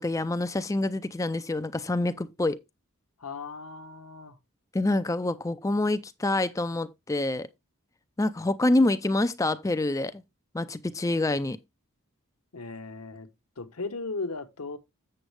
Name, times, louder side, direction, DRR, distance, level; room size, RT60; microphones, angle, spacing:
voice 1, 0.0-2.6 4.7-7.5 8.2-10.2 10.5-11.6, left 2 dB, 15° left, 0.4 m, -26 dB
voice 2, 3.2-4.4 12.5-13.3 13.6-14.8, left 3 dB, 80° left, 1.0 m, -36 dB
7.8 x 7.1 x 3.3 m
head